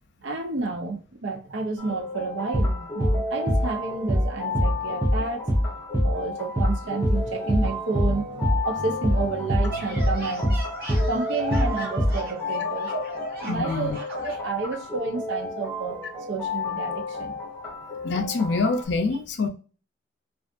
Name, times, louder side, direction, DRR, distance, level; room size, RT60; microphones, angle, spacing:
voice 1, 0.2-5.5 6.0-10.5 11.1-12.9 13.4-13.9 14.2-16.0 16.3-17.3, right 4 dB, 75° right, 0.7 m, -30 dB
sound 1, 1.8-18.8, left 3 dB, 5° left, 0.8 m, -33 dB
sound 2, 2.5-2.7 3.0-3.2 3.5-3.7 4.1-4.3 4.5-4.7 5.0-5.2 5.5-5.7 5.9-6.1 6.6-6.8 7.0-7.2 7.5-7.7 7.9-8.2 8.4-8.6 9.0-9.2 9.5-9.7 10.0-10.2 10.4-10.6 10.9-11.1 11.5-11.7 12.0-12.2, equal, 15° right, 0.4 m, -22 dB
sound 3, 9.7-14.5, right 1 dB, 50° right, 1.1 m, -35 dB
voice 2, 13.5-14.0 18.0-19.5, left 3 dB, 65° left, 0.5 m, -25 dB
2.5 x 2.4 x 2.4 m
head